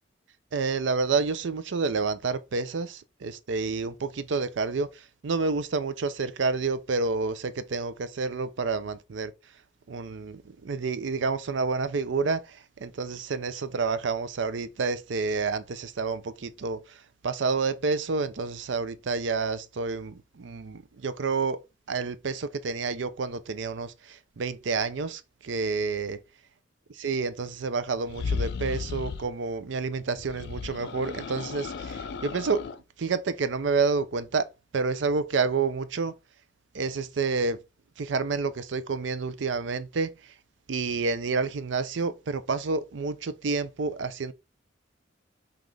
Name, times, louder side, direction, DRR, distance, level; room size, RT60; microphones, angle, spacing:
voice 1, 0.5-9.3 9.9-21.6 21.9-26.2 26.9-32.6 33.0-36.1 36.7-37.6 38.0-40.3 40.7-44.3, right 4 dB, 75° right, 0.5 m, -29 dB
sound 1, 28.0-29.3 30.2-32.8, left 5 dB, 60° left, 0.4 m, -34 dB
5.8 x 2.4 x 3.2 m
head